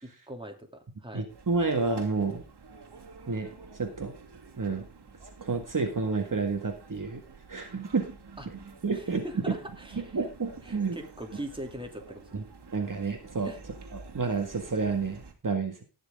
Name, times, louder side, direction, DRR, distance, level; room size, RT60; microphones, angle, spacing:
voice 1, 0.0-1.3 8.4-8.5 8.9-10.2 10.6-12.4 13.4-13.6, right 1 dB, 10° right, 3 dB, 2.7 m, -41 dB
voice 2, 1.1-2.4 3.3-4.1 4.6-4.9 5.4-7.2 7.5-8.1 8.8-9.3 10.1-11.0 12.3-12.4 12.7-13.5 14.1-15.8, right 4 dB, 45° right, 4 dB, 1.9 m, -30 dB
sound 1, 1.3-15.3, right 4 dB, 60° right, 2.7 m, -49 dB
19.0 x 6.6 x 3.6 m, 0.28 s
wide cardioid pair, 85°, 45 cm